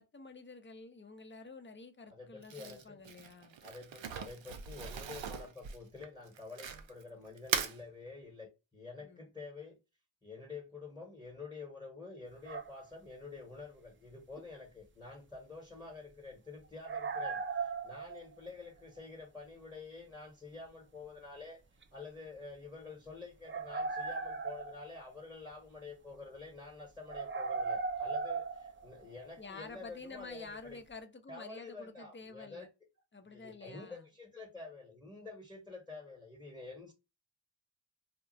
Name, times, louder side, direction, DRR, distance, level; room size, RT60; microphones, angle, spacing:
voice 1, 0.0-3.6 9.0-9.3 29.4-32.7 33.1-34.1, left 3 dB, 25° left, 0.6 m, -49 dB
voice 2, 2.1-3.0 3.6-9.8 10.2-21.6 21.9-30.8 31.3-32.7 33.3-36.9, left 3 dB, 10° left, 1.0 m, -49 dB
Crumpling crinkling, 2.4-7.0 7.4-7.8, right 7 dB, 80° right, 0.5 m, -39 dB
sound 1, 12.4-12.9 14.4-14.5 16.8-18.5 21.8-21.9 23.5-25.2 27.1-29.5, right 4 dB, 30° right, 0.4 m, -37 dB
2.3 x 2.1 x 3.8 m
cardioid pair, 45°, 45 cm